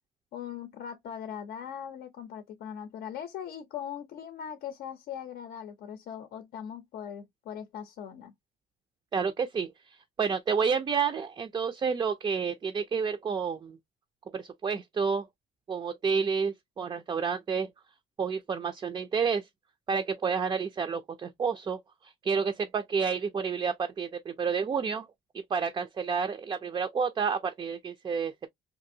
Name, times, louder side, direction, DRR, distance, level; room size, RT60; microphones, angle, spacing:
voice 1, 0.3-8.3, left 8 dB, 65° left, 0.6 m, -40 dB
voice 2, 9.1-9.7 10.2-13.8 14.3-15.3 15.7-17.7 18.2-19.5 19.9-21.8 22.2-25.1 25.5-28.5, right 6 dB, 25° right, 0.3 m, -29 dB
2.7 x 2.6 x 2.6 m
cardioid pair, 110°, 17 cm